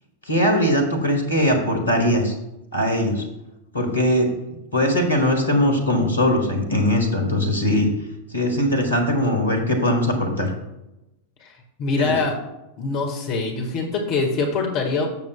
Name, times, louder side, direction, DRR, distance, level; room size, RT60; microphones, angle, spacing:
voice 1, 0.3-2.3 2.7-3.2 3.7-4.3 4.7-7.9 8.3-10.5 12.0-12.1, left 1 dB, 80° left, 3 dB, 1.8 m, -20 dB
voice 2, 11.8-12.3 12.8-15.1, left 3 dB, 40° left, 2 dB, 1.4 m, -23 dB
12.5 x 7.0 x 2.2 m, 0.91 s
figure-of-eight pair, 90°, 0 cm